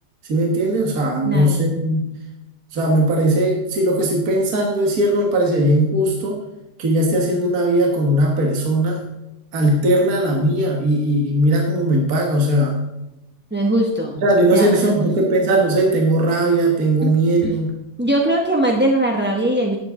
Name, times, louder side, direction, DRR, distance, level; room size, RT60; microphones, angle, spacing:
voice 1, 0.3-2.1 2.7-6.4 6.8-9.0 9.5-12.8 14.2-17.7, right 1 dB, 55° right, 0 dB, 1.9 m, -18 dB
voice 2, 1.2-1.7 13.5-14.2 14.5-15.3 17.0-17.1 17.4-17.5 18.0-19.8, right 1 dB, 10° right, 0 dB, 0.6 m, -21 dB
11.5 x 9.8 x 3.7 m, 0.94 s
omnidirectional pair, 1.9 m